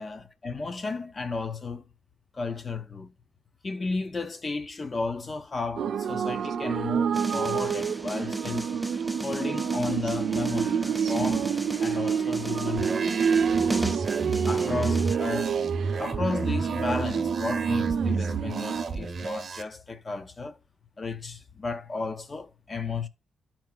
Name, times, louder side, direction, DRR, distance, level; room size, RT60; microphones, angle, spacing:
voice 1, 0.0-1.9 2.3-3.1 3.6-8.7 9.2-11.5 11.8-13.5 14.4-15.6 16.0-20.6 21.0-23.1, left 4 dB, 30° left, 0.7 m, -33 dB
sound 1, 5.8-18.8, right 7 dB, 70° right, 0.4 m, -28 dB
sound 2, 7.1-15.2, right 1 dB, 5° right, 0.3 m, -36 dB
sound 3, 12.8-19.6, right 4 dB, 45° right, 0.8 m, -32 dB
13.0 x 4.6 x 2.2 m
cardioid pair, 110°, 0 cm